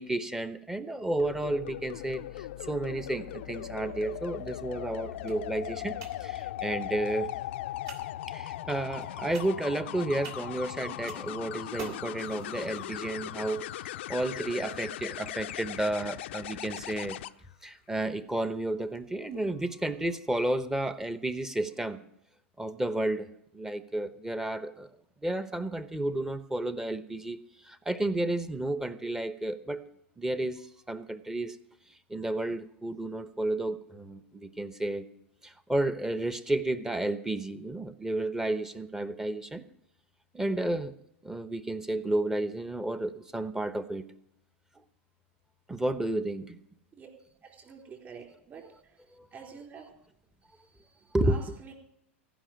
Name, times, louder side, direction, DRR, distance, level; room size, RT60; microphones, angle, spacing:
voice 1, 0.0-7.3 8.3-17.2 17.6-22.0 22.6-23.3 23.5-24.9 25.2-29.8 30.2-31.6 32.1-35.1 35.4-39.6 40.3-40.9 41.2-44.1 45.7-46.6 49.2-49.3 51.1-51.4, right 1 dB, 5° right, 13 dB, 0.8 m, -32 dB
sound 1, 1.2-17.3 19.2-19.5, left 14 dB, 70° left, 0.5 m, -39 dB
sound 2, 3.4-21.3, right 5 dB, 55° right, 3.0 m, -54 dB
voice 2, 47.4-48.6 49.3-49.9 51.2-51.7, right 6 dB, 30° right, 1 dB, 4.1 m, -47 dB
15.0 x 5.7 x 8.9 m, 0.80 s
hypercardioid pair, 105°, 7 cm